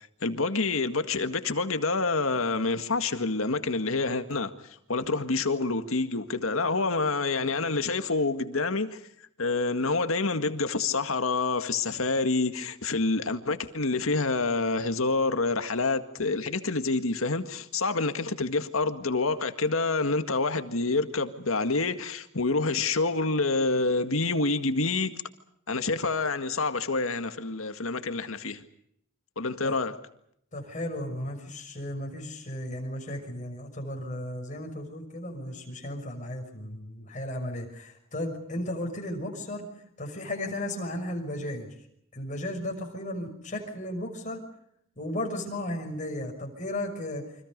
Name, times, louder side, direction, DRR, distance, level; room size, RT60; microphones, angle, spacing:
voice 1, 0.2-4.5 4.9-9.0 9.4-25.1 25.7-28.6 29.4-30.0, left 3 dB, 80° left, 1.9 m, -27 dB
voice 2, 30.5-39.7 40.0-41.7 42.1-44.4 45.0-47.2, left 1 dB, 35° left, 6.3 m, -35 dB
29.5 x 25.0 x 5.3 m
head